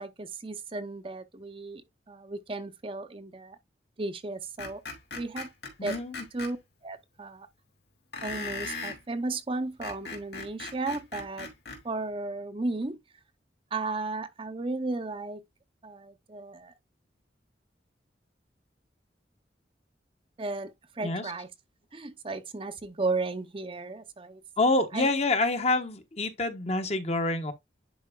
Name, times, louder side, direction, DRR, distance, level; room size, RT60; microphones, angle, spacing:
voice 1, 0.0-3.6 4.0-4.8 5.1-5.5 5.8-6.0 6.3-7.5 8.2-11.5 11.8-13.0 13.7-15.4 15.8-16.7 20.4-21.5 21.9-24.4 24.9-25.1, right 3 dB, 30° right, 0.6 m, -34 dB
Screech, 4.6-6.5 8.1-9.0 9.6-11.8, left 3 dB, 70° left, 2.6 m, -38 dB
voice 2, 5.8-6.2 21.0-21.3 24.6-27.5, left 2 dB, 35° left, 1.0 m, -27 dB
10.5 x 4.6 x 2.3 m
head